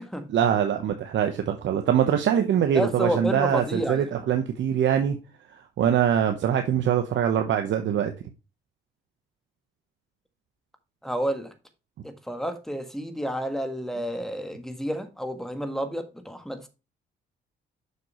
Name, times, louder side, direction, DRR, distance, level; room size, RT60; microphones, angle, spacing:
voice 1, 0.3-5.2 5.8-8.1, right 9 dB, 70° right, 0.9 m, -23 dB
voice 2, 2.7-4.1 11.0-11.5 12.0-16.7, equal, ahead, 1.5 m, -30 dB
6.8 x 6.6 x 3.0 m
cardioid pair, 90°, 20 cm